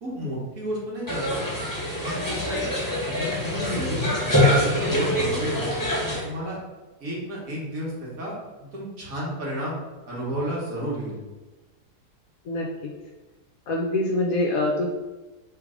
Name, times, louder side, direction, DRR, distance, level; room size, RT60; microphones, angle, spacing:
voice 1, 0.0-1.4 2.0-2.6 3.1-4.1 4.4-5.7 6.2-6.6 7.0-9.8 10.1-11.2, equal, 55° right, -5 dB, 1.7 m, -31 dB
sound 1, 1.1-6.2, left 1 dB, 15° left, 1.2 m, -24 dB
voice 2, 12.4-12.9 13.7-14.9, left 2 dB, 65° left, -1 dB, 0.9 m, -25 dB
3.3 x 3.3 x 4.8 m, 1.2 s
omnidirectional pair, 1.8 m